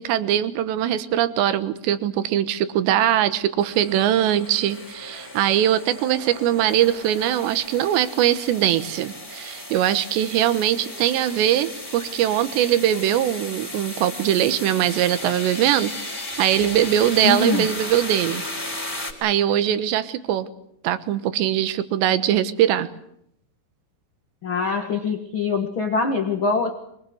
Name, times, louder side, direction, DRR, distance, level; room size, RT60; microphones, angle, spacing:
voice 1, 0.0-18.4 19.2-20.5 20.8-22.9, right 11 dB, 75° right, 13 dB, 3.3 m, -21 dB
sound 1, 3.6-19.1, left 1 dB, 5° left, 3.3 m, -35 dB
voice 2, 17.2-17.7 24.4-26.7, left 4 dB, 80° left, 5 dB, 1.1 m, -23 dB
23.5 x 22.5 x 7.9 m, 0.74 s
omnidirectional pair, 5.4 m